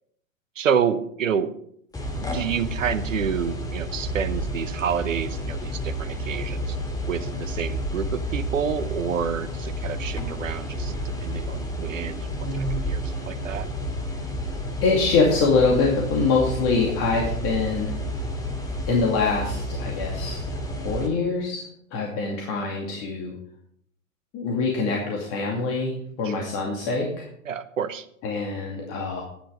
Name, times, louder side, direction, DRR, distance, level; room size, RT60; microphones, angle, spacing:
voice 1, 0.6-1.5 2.3-6.8 7.1-10.9 11.2-12.3 12.8-13.7 26.2-26.5 27.5-28.0, right 7 dB, 70° right, 13 dB, 1.0 m, -28 dB
sound 1, 1.9-21.1, equal, 10° left, 2.2 m, -31 dB
voice 2, 12.4-12.9 14.8-18.0 18.9-21.6 21.9-23.4 24.3-27.3 28.2-29.2, left 4 dB, 35° left, -1 dB, 2.4 m, -24 dB
11.5 x 10.5 x 5.1 m, 0.69 s
figure-of-eight pair, 100°, 41 cm